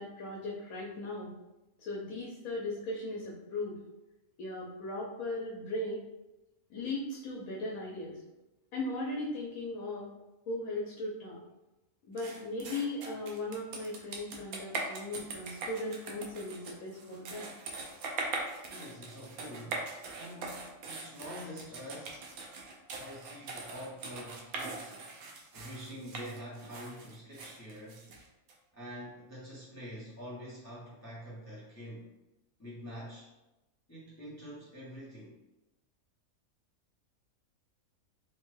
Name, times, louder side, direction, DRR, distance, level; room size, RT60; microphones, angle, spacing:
voice 1, 0.0-1.3 1.8-3.8 4.4-6.0 6.7-8.2 8.7-10.1 10.5-11.4 12.1-17.5, left 2 dB, 80° left, -4 dB, 1.0 m, -37 dB
sound 1, 12.2-28.5, right 3 dB, 85° right, 1.1 m, -41 dB
voice 2, 18.7-19.9 20.2-22.3 23.0-25.0 25.5-28.1 28.7-32.1 32.6-33.3 33.9-35.4, equal, 20° left, -8 dB, 0.5 m, -46 dB
3.2 x 2.1 x 3.1 m, 0.99 s
omnidirectional pair, 1.5 m